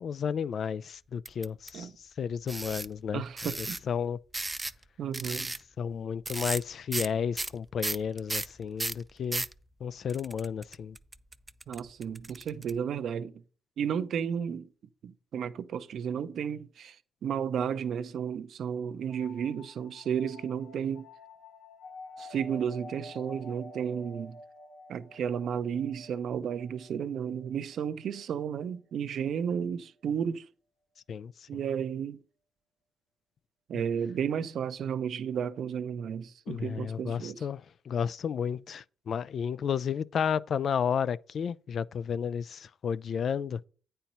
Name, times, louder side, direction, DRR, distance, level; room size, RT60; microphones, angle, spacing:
voice 1, 0.0-1.9 2.2-3.2 3.6-4.2 5.8-9.5 9.8-11.0 31.1-31.5 36.5-43.6, left 7 dB, 55° left, 0.3 m, -32 dB
sound 1, 1.3-1.7 2.5-2.9 3.4-3.8 4.3-4.8 5.1-5.6 6.3-6.6 6.9-7.1 7.4-9.5 10.1-12.7, right 2 dB, 15° right, 0.4 m, -34 dB
voice 2, 3.1-3.8 5.0-5.5 11.7-13.4 13.8-14.7 15.0-17.0 17.2-21.1 22.2-24.4 24.9-30.5 31.5-32.2 33.7-37.5, right 8 dB, 65° right, 0.6 m, -33 dB
sound 2, 19.1-28.5, left 2 dB, 75° left, 1.7 m, -50 dB
9.0 x 4.4 x 5.3 m
cardioid pair, 90°, 0 cm